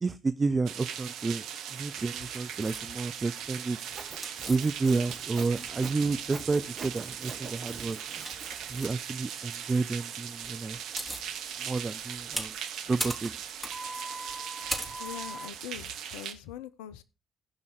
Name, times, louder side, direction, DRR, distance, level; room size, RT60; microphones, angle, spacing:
voice 1, 0.0-3.8 4.5-8.0 8.7-10.8 11.6-12.5 12.9-13.3, right 4 dB, 35° right, 0.5 m, -30 dB
sound 1, 0.7-16.3, right 9 dB, 70° right, 1.0 m, -39 dB
sound 2, 2.6-2.8 4.2-5.3 5.6-6.5 7.1-7.4 8.1-8.9 10.4-10.5 10.7-11.3 11.8-15.5, right 1 dB, 10° right, 3.7 m, -38 dB
Sawing, 3.8-8.8, right 4 dB, 50° right, 1.8 m, -45 dB
voice 2, 15.0-17.0, left 12 dB, 75° left, 0.6 m, -42 dB
15.5 x 5.5 x 4.9 m
hypercardioid pair, 45°, 0 cm